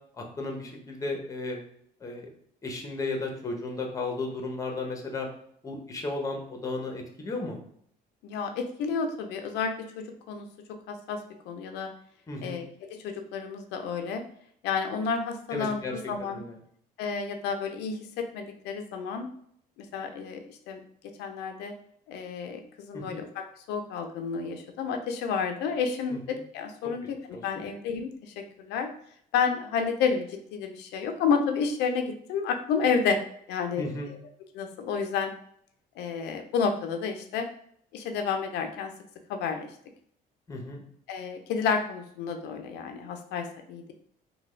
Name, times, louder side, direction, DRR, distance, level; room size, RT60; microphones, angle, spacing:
voice 1, 0.2-1.6 2.0-2.3 2.6-5.3 5.6-7.6 12.3-12.6 15.5-15.9 16.2-16.6 22.9-23.2 26.1-26.2 26.8-26.9 27.3-27.7 33.8-34.1 40.5-40.8, left 2 dB, 20° left, 2 dB, 0.7 m, -34 dB
voice 2, 8.2-10.5 10.9-11.2 11.5-11.9 12.4-12.6 13.0-14.2 14.6-16.4 17.0-19.3 19.9-20.8 21.2-21.7 22.1-28.9 29.3-30.3 30.5-33.2 33.5-34.2 34.5-35.3 36.0-37.5 37.9-38.9 39.3-39.7 41.1-43.9, left 5 dB, 85° left, 5 dB, 0.4 m, -30 dB
3.3 x 2.2 x 3.1 m, 0.66 s
cardioid pair, 110°, 17 cm